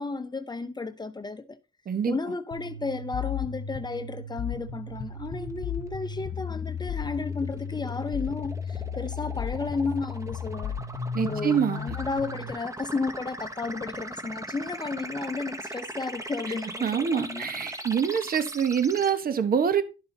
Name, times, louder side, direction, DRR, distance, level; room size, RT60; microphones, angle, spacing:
voice 1, 0.0-1.6 2.1-10.8 11.2-17.8, left 3 dB, 20° left, 0.8 m, -33 dB
voice 2, 1.9-2.2 11.1-12.0 16.8-19.8, right 7 dB, 45° right, 1.4 m, -25 dB
sound 1, 2.5-12.5, left 6 dB, 85° left, 1.0 m, -34 dB
sound 2, 4.9-19.1, right 1 dB, 15° right, 1.4 m, -41 dB
12.0 x 5.6 x 4.0 m
cardioid pair, 90°, 20 cm